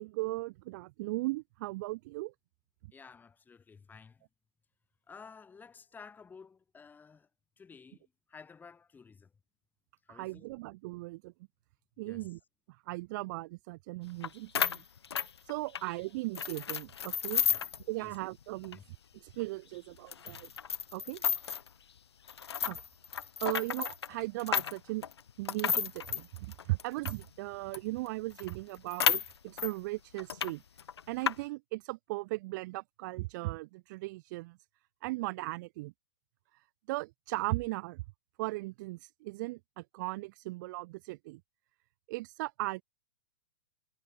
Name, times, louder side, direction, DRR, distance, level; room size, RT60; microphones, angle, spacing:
voice 1, 0.0-2.3 10.1-11.3 12.0-12.4 12.9-14.8 15.5-17.4 17.9-18.8 19.2-20.5 20.9-21.2 22.7-22.8 23.4-25.0 25.4-30.6 31.1-34.6 35.0-35.9 36.9-38.0 38.4-41.4 42.1-42.8, right 21 dB, 45° right, 0.5 m, -37 dB
voice 2, 2.9-4.2 5.1-7.3 7.6-9.3 10.1-10.5 12.0-12.3 17.4-17.7 18.0-18.2 18.7-18.8, left 5 dB, 15° left, 3.3 m, -53 dB
sound 1, 14.2-14.3 14.5-15.9 16.3-17.8 18.1-18.2 18.6-18.7 19.3-19.4 20.1-21.7 22.3-27.2 27.7-27.8 28.1-28.2 28.4-29.7 30.2-30.5 30.8-31.3, left 7 dB, 90° left, 0.6 m, -32 dB
hypercardioid pair, 120°, 13 cm